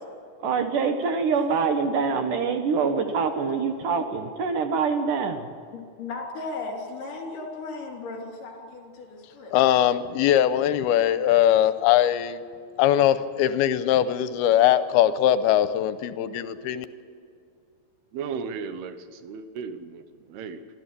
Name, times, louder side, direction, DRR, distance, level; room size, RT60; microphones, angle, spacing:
voice 1, 0.4-5.5, right 5 dB, 65° right, 6 dB, 2.5 m, -25 dB
voice 2, 5.7-9.5, left 3 dB, 60° left, 1 dB, 4.9 m, -36 dB
voice 3, 9.5-12.4 12.8-16.9, left 11 dB, 85° left, 12 dB, 2.7 m, -21 dB
voice 4, 18.1-20.0 20.3-20.6, right 6 dB, 80° right, 10 dB, 3.1 m, -35 dB
24.0 x 14.0 x 8.3 m, 2.3 s
omnidirectional pair, 4.5 m